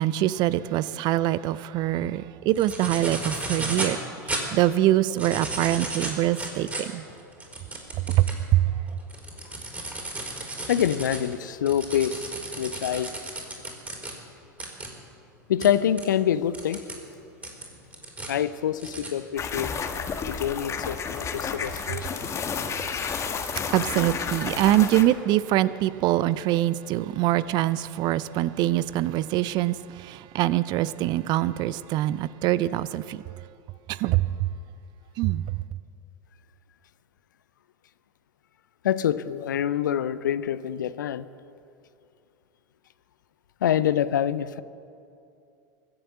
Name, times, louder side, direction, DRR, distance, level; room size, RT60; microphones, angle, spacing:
voice 1, 0.0-4.0 4.3-7.1 8.1-8.2 8.5-8.7 23.7-33.2 33.9-34.3 35.2-35.4, right 14 dB, 45° right, 0.5 m, -24 dB
sound 1, 2.5-4.0 4.3-4.4 5.0-8.4 8.9-14.1 14.6-14.9 15.6-15.7 16.0-16.1 16.5-17.0 17.4-18.3 18.8-19.1, right 2 dB, 15° right, 4.2 m, -34 dB
voice 2, 10.7-12.3 12.6-13.1 15.5-16.9 18.3-19.7 20.3-22.1 38.8-41.3 43.6-44.6, left 10 dB, 75° left, 0.6 m, -26 dB
sound 2, 19.4-25.0, left 6 dB, 30° left, 1.4 m, -31 dB
23.0 x 7.7 x 7.7 m
figure-of-eight pair, 85°, 10 cm